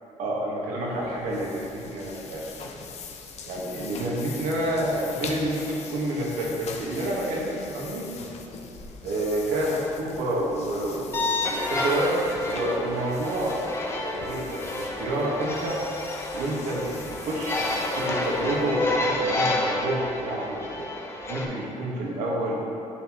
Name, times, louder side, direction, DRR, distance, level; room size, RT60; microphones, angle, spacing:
voice 1, 0.2-2.5 3.4-8.1 9.0-13.6 13.9-15.8 16.3-20.9 21.3-22.7, right 1 dB, 85° right, -4 dB, 1.6 m, -29 dB
sound 1, 0.8-19.3, left 5 dB, 60° left, 0.7 m, -43 dB
sound 2, 11.1-21.4, left 2 dB, 20° left, 0.9 m, -29 dB
11.0 x 4.4 x 3.1 m, 2.8 s
cardioid pair, 110°, 13 cm